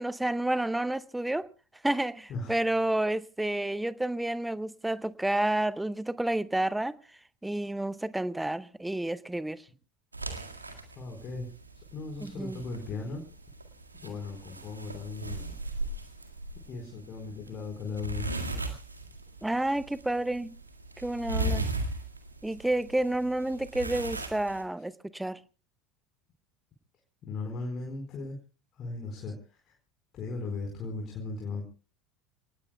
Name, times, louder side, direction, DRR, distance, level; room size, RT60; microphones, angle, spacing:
voice 1, 0.0-1.5 1.8-7.0 7.4-9.6 12.2-12.6 19.4-20.5 21.0-21.6 22.4-25.4, right 1 dB, 5° right, 0.8 m, -30 dB
sound 1, 10.1-24.6, right 2 dB, 90° right, 1.9 m, -38 dB
voice 2, 11.0-11.5 11.9-13.2 14.0-15.5 15.8-15.9 16.7-18.4 27.2-28.4 28.8-29.7 30.1-31.6, left 3 dB, 40° left, 4.4 m, -37 dB
30.0 x 19.0 x 2.2 m
figure-of-eight pair, 70°, 0 cm